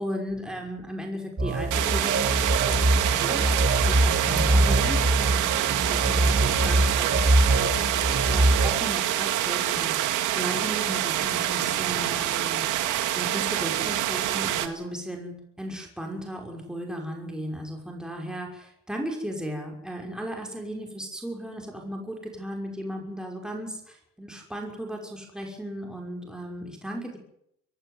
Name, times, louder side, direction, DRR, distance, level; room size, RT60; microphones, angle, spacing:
voice 1, 0.0-12.7 13.1-27.2, equal, ahead, 1 dB, 5.8 m, -36 dB
sound 1, 1.4-8.7, right 1 dB, 35° right, 6.6 m, -23 dB
sound 2, 1.7-14.7, right 12 dB, 90° right, 1.9 m, -26 dB
26.0 x 11.5 x 9.6 m, 0.75 s
cardioid pair, 90°, 30 cm